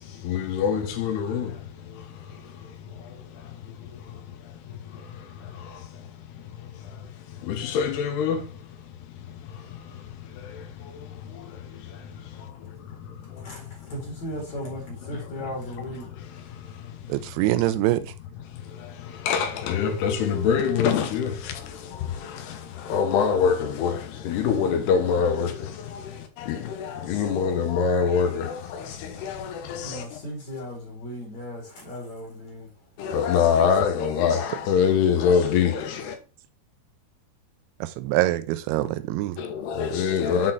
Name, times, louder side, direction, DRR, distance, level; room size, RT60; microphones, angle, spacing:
voice 1, 0.0-17.8 18.3-30.2 33.0-36.2 39.4-40.5, left 7 dB, 85° left, 3.1 m, -27 dB
voice 2, 13.9-16.1 29.7-32.7, equal, 50° left, 2.9 m, -36 dB
voice 3, 17.1-18.1 37.8-39.4, right 16 dB, 85° right, 2.6 m, -24 dB
7.5 x 4.0 x 4.2 m
omnidirectional pair, 4.6 m